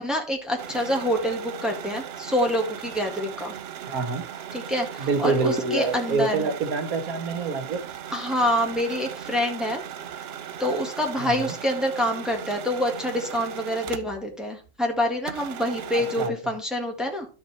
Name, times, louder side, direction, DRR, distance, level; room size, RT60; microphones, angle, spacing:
voice 1, 0.0-3.5 4.5-6.5 8.1-9.8 10.6-17.3, equal, ahead, 1 dB, 1.7 m, -26 dB
sound 1, 0.6-14.4 14.7-14.8 15.3-16.3, right 9 dB, 60° right, 0.7 m, -38 dB
voice 2, 3.9-4.2 5.0-7.8 11.2-11.5 15.9-16.5, right 4 dB, 85° right, 6 dB, 1.9 m, -27 dB
12.0 x 4.7 x 4.3 m, 0.35 s
omnidirectional pair, 1.5 m